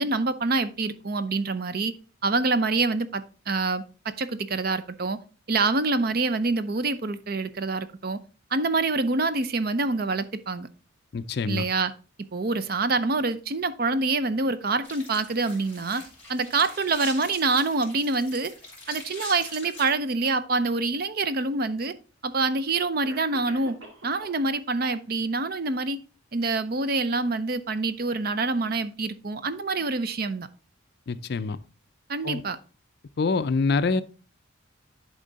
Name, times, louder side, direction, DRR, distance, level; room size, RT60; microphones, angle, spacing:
voice 1, 0.0-1.9 2.2-5.2 5.5-8.2 8.5-10.7 11.5-11.9 12.3-16.0 16.3-18.5 18.9-21.9 22.2-23.8 24.0-26.0 26.3-30.5 32.1-32.6, right 3 dB, 50° right, 0.6 m, -26 dB
voice 2, 11.1-11.7 31.1-31.6 32.2-32.4 33.2-34.0, left 4 dB, 55° left, 0.4 m, -25 dB
sound 1, 14.8-19.9, left 2 dB, 10° left, 3.2 m, -43 dB
Cough, 23.0-24.4 24.8-25.4, right 2 dB, 80° right, 2.0 m, -45 dB
11.0 x 3.7 x 3.9 m
head